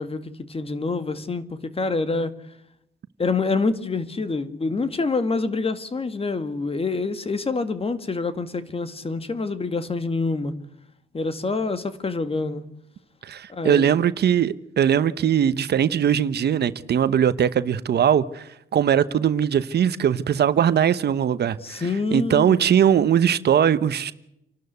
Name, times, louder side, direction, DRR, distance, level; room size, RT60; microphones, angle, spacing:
voice 1, 0.0-2.3 3.2-10.5 11.1-12.6 13.5-13.9 21.6-22.7, left 3 dB, 30° left, 2.1 m, -26 dB
voice 2, 13.2-24.1, right 9 dB, 55° right, 1.0 m, -20 dB
28.5 x 12.5 x 8.1 m
cardioid pair, 90°, 20 cm